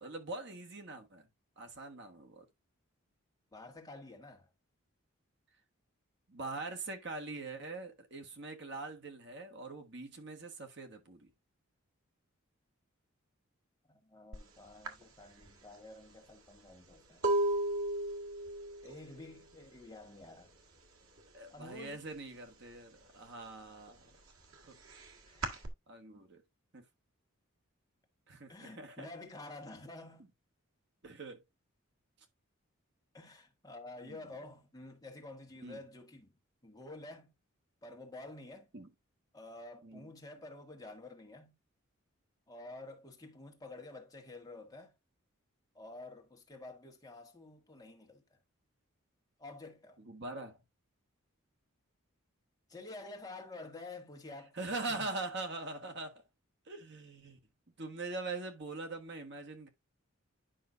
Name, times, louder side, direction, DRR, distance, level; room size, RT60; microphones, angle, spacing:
voice 1, 0.0-1.3 1.6-2.5 6.3-11.3 21.3-24.1 24.7-24.8 25.9-26.4 26.7-26.8 28.3-29.1 31.0-31.4 34.0-34.2 35.6-35.8 38.7-38.9 39.8-40.1 50.0-50.6 54.5-56.2 56.6-57.4 57.8-59.7, right 3 dB, 55° right, 1.4 m, -43 dB
voice 2, 3.5-4.5 13.8-17.3 18.8-20.5 21.5-22.0 25.3-25.6 28.5-30.3 33.1-36.3 36.6-37.3 37.8-38.7 39.3-41.5 42.5-44.9 45.7-48.4 49.4-50.0 52.7-54.6 54.9-55.0, left 2 dB, 15° left, 1.5 m, -50 dB
sound 1, 14.3-14.5 14.8-20.5 20.8-21.3 21.6-22.7 23.1-25.7, right 1 dB, 80° right, 1.8 m, -36 dB
10.0 x 5.7 x 2.5 m
head